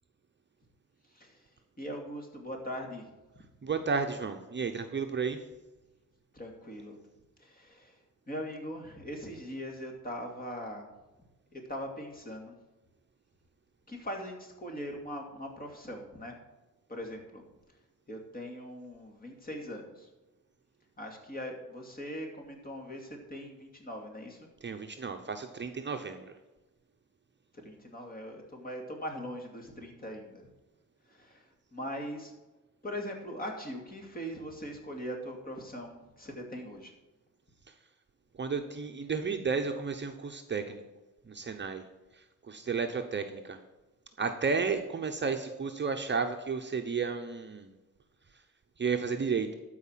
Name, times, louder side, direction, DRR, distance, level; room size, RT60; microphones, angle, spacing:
voice 1, 1.1-1.5 1.8-3.1 3.3-3.4 6.3-7.0 7.4-8.0 8.3-10.9 11.5-12.5 13.9-16.3 16.9-17.4 18.1-20.1 21.0-24.5 27.6-30.4 31.1-32.3 32.8-36.9, equal, 25° left, 2 dB, 2.5 m, -41 dB
voice 2, 3.6-5.4 24.6-26.3 38.4-40.8 41.3-41.8 42.5-43.6 44.2-47.7 48.8-49.5, right 5 dB, 35° right, 5 dB, 0.8 m, -32 dB
12.5 x 4.9 x 7.4 m, 1.1 s
cardioid pair, 115°, 32 cm